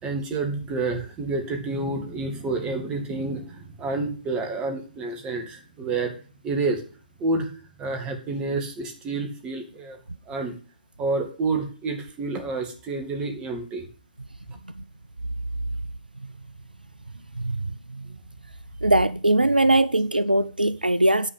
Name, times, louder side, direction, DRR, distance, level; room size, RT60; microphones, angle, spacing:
voice 1, 0.0-6.1 6.4-6.8 7.2-7.5 7.8-10.0 10.3-10.6 11.0-13.9, right 3 dB, 20° right, 2.2 m, -29 dB
voice 2, 17.4-17.7 18.8-21.3, right 1 dB, 90° right, 0.5 m, -20 dB
9.9 x 5.1 x 8.1 m
figure-of-eight pair, 125°, 5 cm